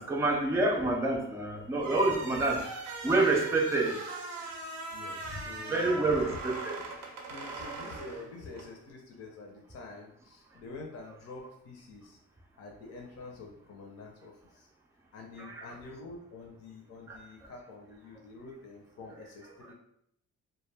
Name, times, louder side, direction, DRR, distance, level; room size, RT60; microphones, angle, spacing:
voice 1, 0.0-2.6 3.0-4.0 5.7-6.8 15.4-15.7 17.1-17.5 19.6-19.7, right 2 dB, 10° right, 0 dB, 0.4 m, -28 dB
sound 1, 1.8-8.7, right 3 dB, 85° right, 0.6 m, -40 dB
voice 2, 4.9-6.4 7.2-12.2 12.6-14.7 15.1-19.7, left 3 dB, 55° left, 0 dB, 0.6 m, -47 dB
2.2 x 2.2 x 3.3 m, 0.73 s
cardioid pair, 90°, 30 cm